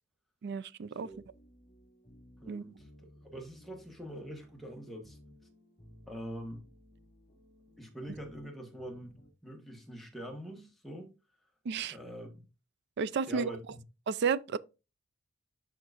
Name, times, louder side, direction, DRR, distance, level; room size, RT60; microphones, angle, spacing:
voice 1, 0.4-1.1 2.5-2.6 11.7-12.0 13.0-13.5 14.1-14.6, right 6 dB, 55° right, 0.4 m, -32 dB
sound 1, 1.1-9.3, left 1 dB, 25° left, 2.3 m, -59 dB
voice 2, 2.4-5.2 6.0-6.7 7.8-9.1 9.4-11.1 11.9-12.4 13.3-13.8, equal, ahead, 1.4 m, -44 dB
11.5 x 3.9 x 2.5 m
head